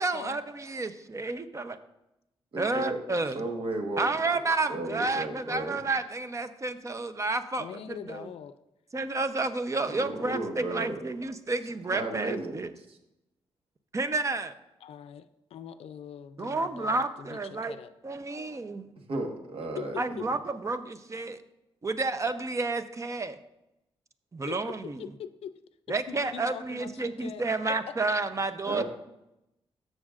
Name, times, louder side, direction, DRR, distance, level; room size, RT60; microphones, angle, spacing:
voice 1, 0.0-1.7 2.6-3.4 4.0-8.3 8.9-12.7 13.9-14.5 16.4-17.8 18.0-18.9 20.0-21.4 21.8-23.4 24.3-25.0 25.9-28.8, right 3 dB, 30° right, 10 dB, 0.7 m, -30 dB
voice 2, 2.5-3.0 3.3-4.0 4.7-5.8 9.9-11.0 11.9-12.6 12.9-13.0 19.1-20.0 28.6-28.8, right 2 dB, 70° right, 3 dB, 1.4 m, -34 dB
voice 3, 7.6-8.6 14.8-17.9 19.8-19.9 20.2-20.3 24.5-24.6 25.0-25.5 26.1-27.4 27.9-28.0, left 8 dB, 80° left, 12 dB, 0.4 m, -42 dB
13.5 x 6.4 x 2.5 m, 0.88 s
cardioid pair, 75°, 10 cm